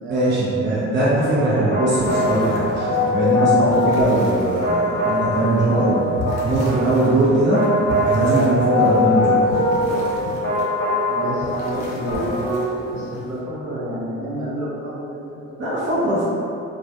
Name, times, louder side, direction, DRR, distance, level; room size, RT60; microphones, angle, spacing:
voice 1, 0.1-6.2 6.4-7.7 8.0-9.6 15.6-16.2, right 1 dB, 40° right, -9 dB, 0.6 m, -20 dB
sound 1, 1.2-12.8, left 1 dB, 55° left, 0.9 m, -22 dB
sound 2, 1.9-13.4, left 1 dB, 85° left, 0.5 m, -34 dB
voice 2, 11.1-15.6, equal, 65° right, -7 dB, 0.8 m, -30 dB
2.2 x 2.1 x 2.8 m, 2.6 s
cardioid pair, 90°, 30 cm